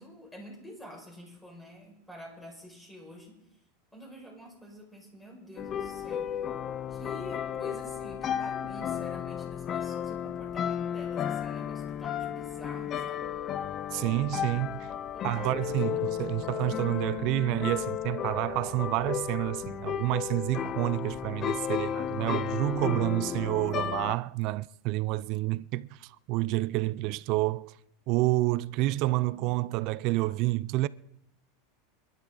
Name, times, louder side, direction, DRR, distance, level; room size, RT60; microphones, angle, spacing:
voice 1, 0.0-3.4 3.9-6.4 6.9-13.4 15.1-16.2, equal, 5° left, 5.8 m, -48 dB
sound 1, 5.6-24.1, left 9 dB, 30° left, 0.6 m, -33 dB
voice 2, 13.9-14.9 15.2-27.7 28.1-30.9, right 19 dB, 50° right, 0.4 m, -29 dB
26.0 x 12.0 x 3.9 m
supercardioid pair, 130°, 0 cm